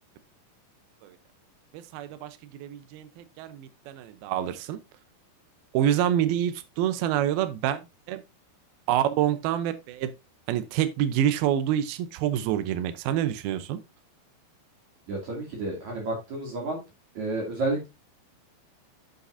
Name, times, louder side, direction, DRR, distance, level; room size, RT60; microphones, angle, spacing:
voice 1, 1.7-4.8 5.7-7.8 8.1-8.2 8.9-10.1 10.5-13.8, right 11 dB, 75° right, 2.4 m, -27 dB
voice 2, 15.1-16.8 17.2-17.9, right 2 dB, 45° right, 3.7 m, -30 dB
9.1 x 7.0 x 2.6 m
omnidirectional pair, 4.9 m